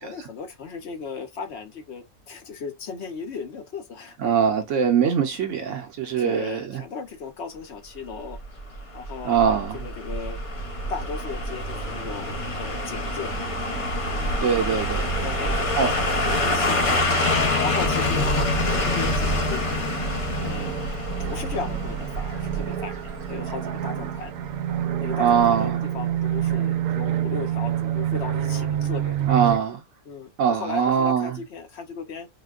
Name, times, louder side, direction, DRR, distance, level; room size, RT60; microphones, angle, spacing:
voice 1, 0.0-4.2 6.2-8.4 8.9-10.4 10.9-13.3 14.0-14.7 15.2-16.9 17.6-18.3 18.7-20.0 20.4-20.8 21.2-23.0 23.3-24.3 25.0-29.3 30.0-32.3, left 5 dB, 55° left, 0.9 m, -36 dB
voice 2, 4.2-6.8 9.2-9.8 14.4-15.1 15.8-15.9 25.2-25.8 29.3-29.8 30.4-31.4, right 7 dB, 65° right, 0.9 m, -22 dB
sound 1, 8.3-23.2 23.5-23.6, left 1 dB, 35° left, 0.6 m, -26 dB
sound 2, 10.6-29.6, right 10 dB, 90° right, 1.1 m, -30 dB
4.9 x 2.2 x 2.3 m
omnidirectional pair, 1.5 m